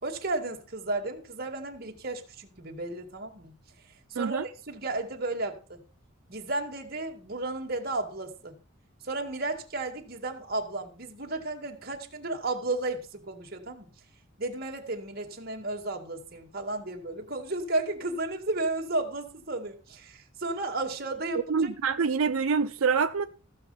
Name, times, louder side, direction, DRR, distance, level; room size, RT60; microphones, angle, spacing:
voice 1, 0.0-3.5 4.1-5.8 6.3-8.5 9.0-13.9 14.4-21.7, right 2 dB, 50° right, 2.1 m, -33 dB
voice 2, 21.5-23.3, right 5 dB, 90° right, 0.6 m, -26 dB
15.0 x 6.6 x 5.7 m
head